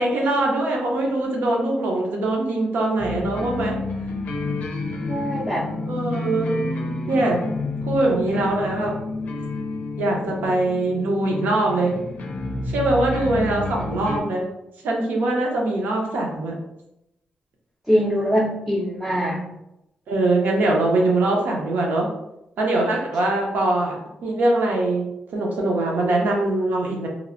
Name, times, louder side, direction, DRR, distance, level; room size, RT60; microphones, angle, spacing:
voice 1, 0.0-3.8 5.9-6.5 7.1-7.4 7.8-8.9 10.0-12.0 12.7-14.4 14.8-16.5 20.1-22.1 22.6-24.0 24.2-25.1 25.3-27.1, right 2 dB, 80° right, -1 dB, 0.7 m, -22 dB
sound 1, 3.0-14.2, left 2 dB, 60° left, 0.5 m, -30 dB
voice 2, 5.1-5.6 8.2-8.3 17.9-19.4, equal, ahead, -5 dB, 0.4 m, -23 dB
3.0 x 2.0 x 2.5 m, 0.86 s
cardioid pair, 100°, 3 cm